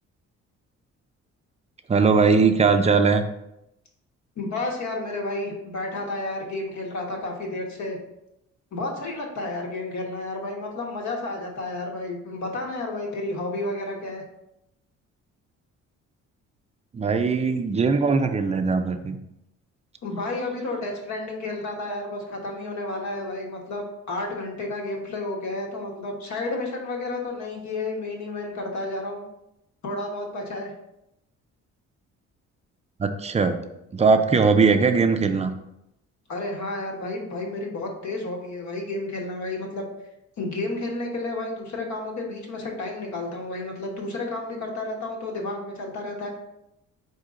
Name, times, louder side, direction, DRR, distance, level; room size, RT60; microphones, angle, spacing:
voice 1, 1.9-3.2 16.9-19.2 33.0-33.5 33.9-35.5, right 4 dB, 20° right, 8 dB, 0.4 m, -20 dB
voice 2, 4.4-8.0 8.7-14.2 20.0-29.3 29.8-30.7 36.3-39.8 40.4-46.3, left 2 dB, 65° left, 0 dB, 1.2 m, -31 dB
4.4 x 2.8 x 3.6 m, 0.85 s
cardioid pair, 90°, 30 cm